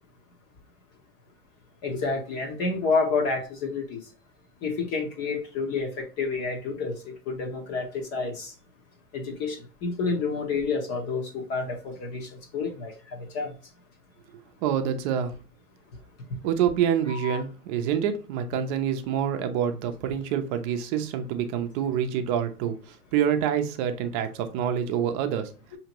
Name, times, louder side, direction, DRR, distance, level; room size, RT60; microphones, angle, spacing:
voice 1, 1.8-4.0 4.6-7.0 7.3-8.5 9.1-13.5 17.1-17.4, left 4 dB, 35° left, 2 dB, 0.8 m, -29 dB
voice 2, 14.6-15.3 16.4-22.7 23.1-25.5, right 9 dB, 35° right, 7 dB, 0.6 m, -26 dB
4.9 x 2.9 x 2.9 m, 0.35 s
hypercardioid pair, 120°, 46 cm